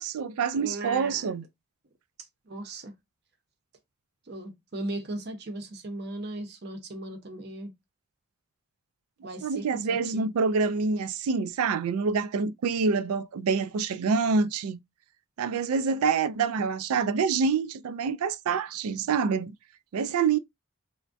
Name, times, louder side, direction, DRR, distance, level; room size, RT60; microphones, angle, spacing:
voice 1, 0.0-1.4 9.4-14.8 15.4-19.5 19.9-20.4, right 5 dB, 85° right, 0.4 m, -26 dB
voice 2, 0.5-1.3 2.5-2.9 4.3-7.7 9.2-10.3, right 1 dB, 50° right, 0.7 m, -37 dB
3.4 x 2.2 x 2.5 m
head